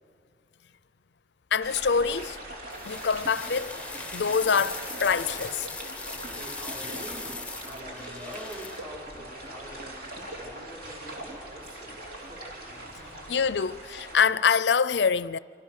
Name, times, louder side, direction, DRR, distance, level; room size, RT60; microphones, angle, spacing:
voice 1, 1.5-2.4 2.8-3.8 4.1-5.7 13.3-15.4, left 6 dB, 70° left, 0.5 m, -25 dB
sound 1, 1.6-14.2, right 1 dB, 55° right, 3.7 m, -41 dB
sound 2, 2.7-8.8, left 4 dB, 5° left, 0.8 m, -40 dB
voice 2, 6.2-12.6 13.2-13.3, equal, 35° right, 5.2 m, -45 dB
27.0 x 25.5 x 6.5 m
head